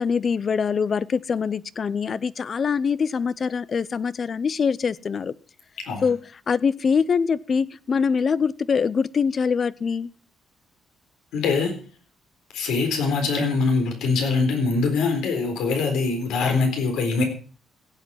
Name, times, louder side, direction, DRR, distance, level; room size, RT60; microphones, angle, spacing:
voice 1, 0.0-5.3 6.0-10.1, left 6 dB, 45° left, 0.6 m, -24 dB
voice 2, 11.3-11.8 12.5-17.2, left 4 dB, 85° left, 4.1 m, -23 dB
16.5 x 8.2 x 5.9 m
cardioid pair, 90°, 0 cm